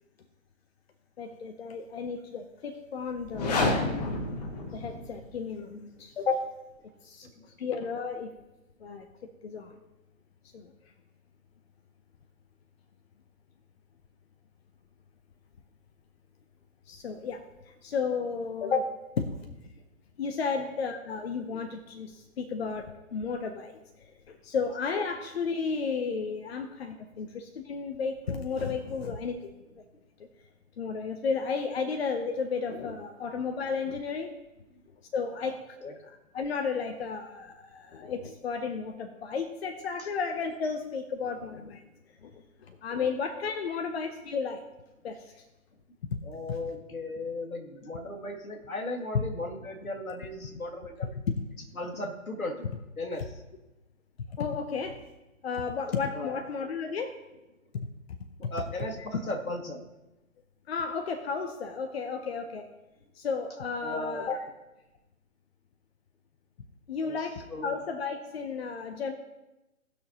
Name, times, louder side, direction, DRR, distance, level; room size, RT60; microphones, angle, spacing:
voice 1, 1.2-3.9 4.7-6.5 7.0-7.3 7.6-8.3 8.8-9.7 10.5-10.7 16.9-19.5 20.2-23.8 24.3-29.4 29.8-29.9 30.8-34.3 35.1-35.8 36.3-41.8 42.2-44.6 45.0-45.3 46.1-46.2 46.5-46.6 51.3-51.4 54.3-55.0 55.4-57.2 57.7-57.9 58.4-58.5 60.7-62.7 63.1-64.4 66.9-69.1, left 5 dB, 45° left, 7 dB, 0.9 m, -33 dB
sound 1, 3.2-5.3, left 2 dB, 30° left, 1.1 m, -29 dB
voice 2, 7.4-7.7 20.6-20.7 35.4-35.6 35.8-35.9 40.0-40.1 43.0-43.1 46.2-51.1 51.7-52.7 53.0-53.4 56.1-56.5 58.4-59.9 63.8-64.2 67.0-67.8, left 2 dB, 80° left, 3 dB, 2.1 m, -37 dB
18.5 x 6.2 x 3.0 m, 1.0 s
figure-of-eight pair, 140°, 42 cm